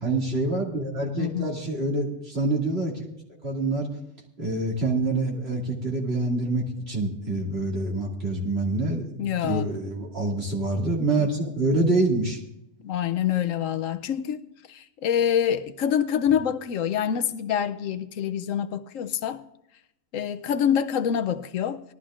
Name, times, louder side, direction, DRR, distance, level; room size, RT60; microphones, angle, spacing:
voice 1, 0.0-3.1 3.4-3.9 4.4-12.4, right 2 dB, 50° right, 2.8 m, -26 dB
voice 2, 1.1-1.6 9.2-9.7 12.8-19.4 20.1-21.8, left 9 dB, 80° left, 1.0 m, -26 dB
19.5 x 13.0 x 2.5 m
omnidirectional pair, 1.4 m